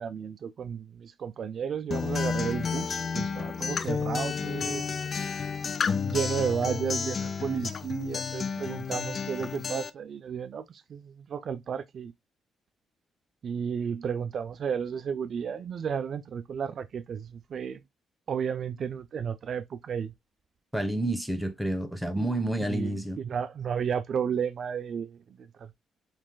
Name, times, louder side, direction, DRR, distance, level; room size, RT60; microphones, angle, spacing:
voice 1, 0.0-4.8 6.0-12.1 13.4-17.8 18.3-20.1 22.2-25.7, right 7 dB, 55° right, 0.4 m, -33 dB
Acoustic guitar, 1.9-9.9, left 6 dB, 45° left, 0.5 m, -31 dB
voice 2, 20.7-23.2, right 1 dB, ahead, 1.2 m, -29 dB
7.3 x 3.2 x 2.2 m
cardioid pair, 90°, 0 cm